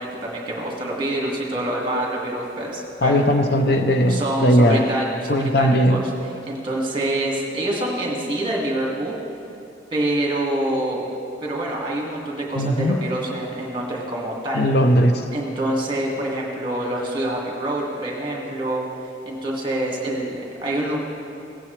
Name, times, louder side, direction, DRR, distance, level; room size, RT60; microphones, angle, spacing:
voice 1, 0.0-3.3 4.0-9.2 9.9-11.1 11.4-14.6 15.3-18.8 19.3-21.0, right 1 dB, 25° right, -2 dB, 2.0 m, -26 dB
voice 2, 3.0-4.9 5.3-6.0 12.5-13.0 14.5-15.1, equal, 55° left, 6 dB, 0.7 m, -18 dB
17.5 x 9.0 x 3.3 m, 2.7 s
head